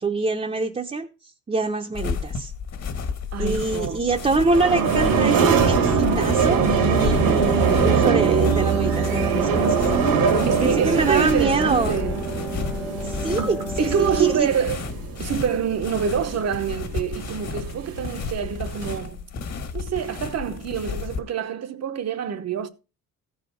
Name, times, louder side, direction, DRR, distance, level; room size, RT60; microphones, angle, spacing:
voice 1, 0.0-2.5 3.4-9.9 10.3-12.0 13.0-14.5, right 3 dB, 20° right, 0.8 m, -25 dB
sound 1, 1.9-21.2, left 5 dB, 50° left, 1.8 m, -32 dB
voice 2, 3.3-4.0 10.5-12.2 13.8-14.9 15.2-19.3 19.7-22.7, right 8 dB, 50° right, 1.0 m, -26 dB
sound 2, 4.1-19.0, right 6 dB, 85° right, 2.3 m, -23 dB
Wind instrument woodwind instrument, 6.5-14.7, left 1 dB, 5° left, 0.5 m, -32 dB
14.5 x 5.0 x 5.0 m
cardioid pair, 135°, 33 cm